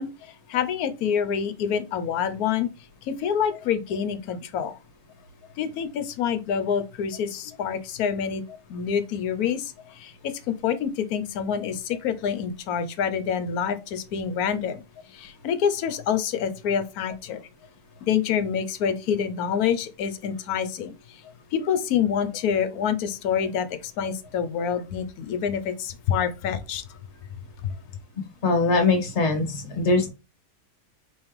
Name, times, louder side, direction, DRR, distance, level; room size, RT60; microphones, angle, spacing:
voice 1, 0.0-2.7 3.1-4.8 5.6-14.8 15.1-17.4 18.0-20.9 21.2-26.8 27.6-27.7, left 8 dB, 75° left, 1.1 m, -27 dB
voice 2, 28.4-30.1, left 3 dB, 45° left, 1.4 m, -22 dB
5.3 x 3.1 x 3.1 m
omnidirectional pair, 1.7 m